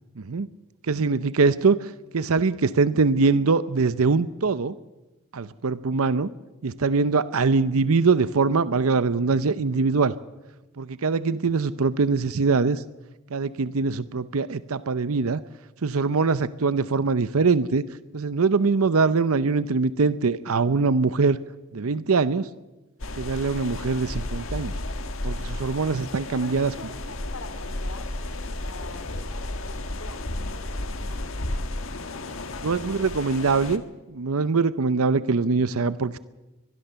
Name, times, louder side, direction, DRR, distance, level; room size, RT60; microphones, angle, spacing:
voice 1, 0.2-0.5 0.9-4.7 5.3-6.3 6.6-10.1 10.8-12.8 13.3-15.4 15.8-17.8 18.1-21.4 21.7-22.5 23.2-24.7 25.2-26.7 32.6-33.8 34.1-36.2, right 4 dB, 75° right, 15 dB, 0.7 m, -23 dB
sound 1, 23.0-33.8, left 2 dB, 60° left, 1.6 m, -33 dB
voice 2, 26.2-28.1 28.5-29.2 29.6-31.3 31.9-33.1, left 2 dB, 80° left, 10 dB, 3.0 m, -45 dB
23.5 x 20.0 x 6.9 m, 1.1 s
head